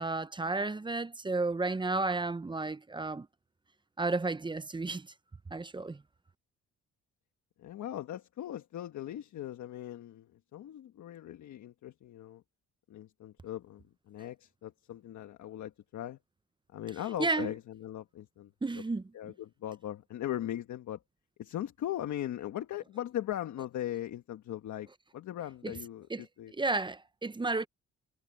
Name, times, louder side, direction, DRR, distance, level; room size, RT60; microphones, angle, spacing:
voice 1, 0.0-3.3 4.0-5.1 5.5-6.0 17.2-17.5 18.6-19.0 25.6-25.7 26.1-26.2 26.6-27.7, right 3 dB, 15° right, 0.7 m, -32 dB
voice 2, 7.6-12.4 12.9-16.2 16.7-18.5 19.1-21.0 21.4-26.5, left 12 dB, 70° left, 1.4 m, -39 dB
cardioid pair, 90°, 30 cm